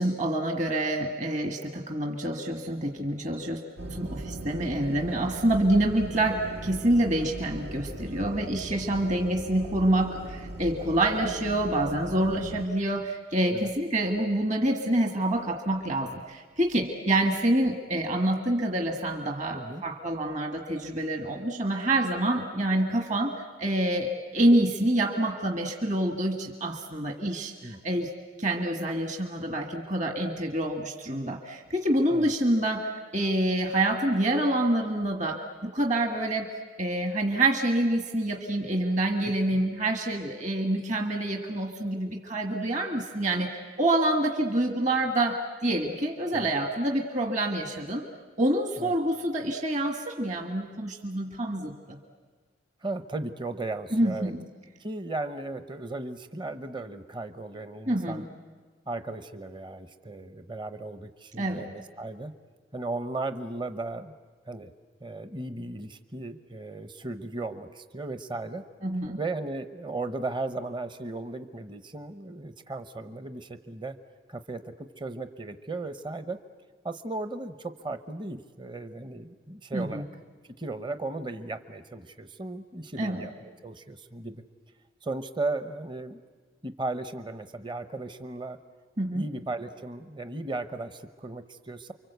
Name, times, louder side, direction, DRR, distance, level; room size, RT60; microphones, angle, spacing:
voice 1, 0.0-3.6 3.9-28.1 28.4-36.5 36.8-43.5 43.8-48.1 48.4-52.0 53.9-54.4 57.9-58.3 61.4-61.7 68.8-69.2 79.7-80.0 83.0-83.3 89.0-89.3, right 1 dB, 40° right, 3 dB, 1.6 m, -27 dB
sound 1, 3.8-12.7, right 1 dB, 75° right, 1.6 m, -39 dB
voice 2, 52.8-54.3 54.8-58.3 58.9-62.3 62.7-64.1 64.5-64.7 65.0-68.6 69.2-74.0 74.3-76.4 76.8-80.0 80.6-84.4 85.0-86.2 86.6-88.6 89.1-91.9, right 2 dB, 25° right, 9 dB, 0.9 m, -36 dB
30.0 x 24.0 x 8.1 m, 1.4 s
head